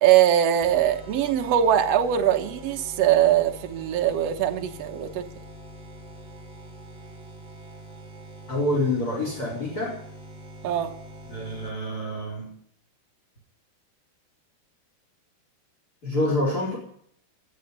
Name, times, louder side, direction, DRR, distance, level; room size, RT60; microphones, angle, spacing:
voice 1, 0.0-5.3 10.6-10.9, right 10 dB, 75° right, 5 dB, 1.4 m, -21 dB
sound 1, 0.6-12.0, equal, 20° right, 3.0 m, -44 dB
voice 2, 8.5-10.0 11.3-12.5 16.0-16.8, left 1 dB, 20° left, -1 dB, 4.6 m, -27 dB
20.0 x 13.0 x 5.4 m, 0.67 s
omnidirectional pair, 4.6 m